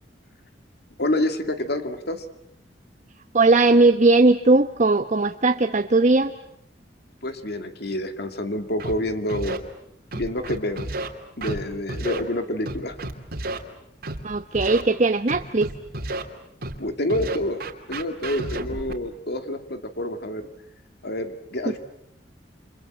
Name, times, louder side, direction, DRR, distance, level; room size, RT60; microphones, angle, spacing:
voice 1, 1.0-2.2 7.2-9.6 10.1-10.9 11.4-13.0 16.8-17.6 17.9-20.5 21.0-21.8, left 1 dB, 65° left, 7 dB, 2.4 m, -28 dB
voice 2, 3.3-6.3 14.2-15.7 21.7-21.8, right 3 dB, 40° right, 7 dB, 1.1 m, -18 dB
Scratching (performance technique), 8.8-8.9 9.3-9.6 10.1-11.1 11.4-11.6 11.9-12.2 12.6-13.6 14.0-14.2 14.5-14.8 15.3-16.2 16.6-16.8 17.1-18.9, right 2 dB, 60° right, 2.9 m, -31 dB
29.5 x 26.5 x 7.6 m, 0.72 s
head